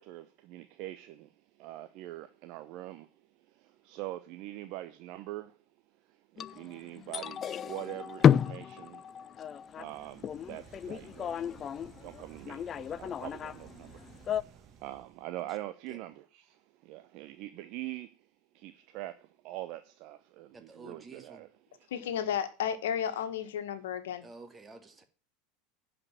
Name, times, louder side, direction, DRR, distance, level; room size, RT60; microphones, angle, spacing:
voice 1, 0.0-3.1 3.4-5.5 6.1-9.0 9.8-11.7 12.0-18.2 18.5-21.5, right 16 dB, 55° right, 0.7 m, -44 dB
sound 1, 6.4-14.4, left 8 dB, 35° left, 0.4 m, -31 dB
sound 2, 9.6-15.3, right 6 dB, 35° right, 2.0 m, -55 dB
voice 2, 20.5-21.4 24.2-25.0, right 3 dB, 20° right, 2.1 m, -50 dB
voice 3, 21.9-24.2, left 9 dB, 70° left, 1.6 m, -33 dB
11.0 x 5.2 x 7.7 m
hypercardioid pair, 85°, 0 cm